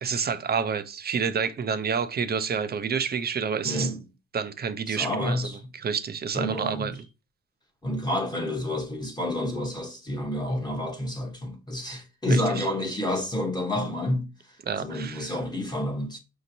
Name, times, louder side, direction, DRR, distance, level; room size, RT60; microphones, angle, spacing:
voice 1, 0.0-3.9 4.3-5.5 5.7-7.0 12.3-12.7 14.7-15.3, right 6 dB, 35° right, 0.5 m, -29 dB
voice 2, 3.6-4.0 4.9-5.6 6.3-6.9 7.8-16.2, left 1 dB, 15° left, 0.9 m, -29 dB
5.0 x 2.9 x 2.6 m
cardioid pair, 90°, 30 cm